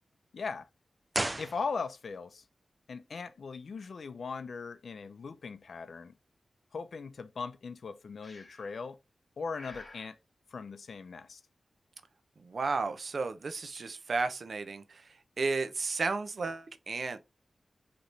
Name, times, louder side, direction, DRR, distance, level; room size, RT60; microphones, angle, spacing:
voice 1, 0.3-0.7 1.4-2.4 2.9-6.2 6.7-9.0 9.4-10.2 10.5-11.4, left 5 dB, 70° left, 0.5 m, -39 dB
sound 1, 1.1-2.2 2.5-2.6, right 2 dB, 20° right, 0.4 m, -35 dB
Breathing, 8.2-8.8 9.5-10.1, left 2 dB, 35° left, 1.7 m, -51 dB
voice 2, 12.4-17.2, right 4 dB, 60° right, 0.6 m, -33 dB
5.1 x 3.0 x 3.2 m
wide cardioid pair, 100°, 0 cm